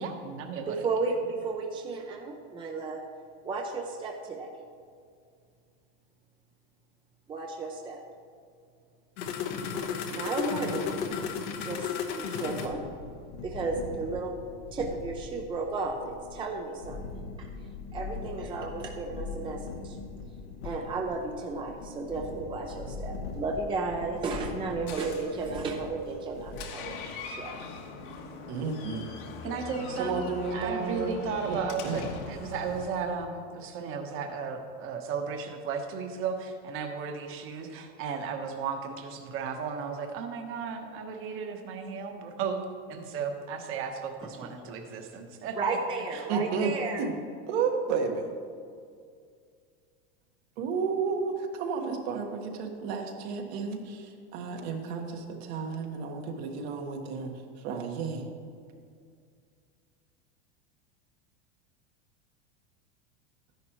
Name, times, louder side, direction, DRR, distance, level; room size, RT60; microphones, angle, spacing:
voice 1, 0.0-0.9 29.4-30.2 30.5-42.6 42.9-45.6 46.1-46.7, right 5 dB, 40° right, 4 dB, 1.2 m, -35 dB
voice 2, 0.7-3.0 3.4-4.5 7.3-8.0 10.1-10.9 11.6-11.9 12.2-12.8 13.4-14.3 14.7-17.5 17.9-20.0 20.6-27.7 44.4-44.5 45.6-47.1, right 3 dB, 15° right, 1 dB, 0.6 m, -33 dB
sound 1, 9.2-26.6, left 5 dB, 75° left, 1.2 m, -38 dB
Door, 24.2-32.9, left 4 dB, 60° left, 1.4 m, -42 dB
voice 3, 28.5-29.1 30.0-31.1 31.5-31.6 31.8-32.1 46.3-46.7 47.0-47.1 47.5-48.3 50.6-58.2, right 5 dB, 65° right, 2 dB, 1.5 m, -32 dB
12.5 x 10.5 x 3.1 m, 2.2 s
supercardioid pair, 145°, 34 cm